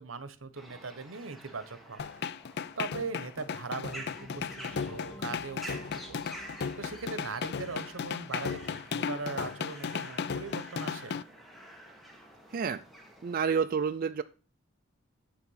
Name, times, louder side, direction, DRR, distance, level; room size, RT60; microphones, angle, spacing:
voice 1, 0.0-2.0 2.8-6.3 6.8-11.2, right 4 dB, 75° right, 14 dB, 1.1 m, -40 dB
sound 1, 0.5-13.4, right 1 dB, ahead, 1.9 m, -49 dB
sound 2, 2.0-11.2, left 6 dB, 55° left, 0.5 m, -35 dB
sound 3, 4.0-13.5, left 1 dB, 35° left, 2.3 m, -54 dB
voice 2, 12.5-12.8 13.2-14.2, right 6 dB, 45° right, 9 dB, 0.4 m, -29 dB
8.5 x 7.1 x 5.6 m, 0.36 s
head